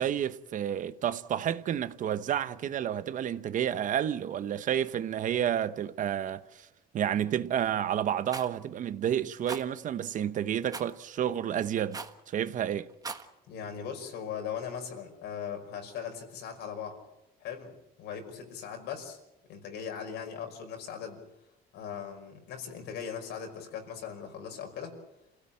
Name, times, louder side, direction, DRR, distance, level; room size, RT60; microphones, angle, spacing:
voice 1, 0.0-6.7 6.9-12.0 12.3-12.9, right 10 dB, 50° right, 1.0 m, -30 dB
Rattle, 8.3-8.5 9.5-9.6 10.7-10.9 11.9-12.2 12.9-13.3, right 4 dB, 20° right, 1.5 m, -38 dB
voice 2, 13.5-17.0 17.4-19.2 19.5-21.2 21.7-25.0, left 7 dB, 85° left, 5.5 m, -39 dB
28.0 x 16.5 x 8.9 m
cardioid pair, 140°, 17 cm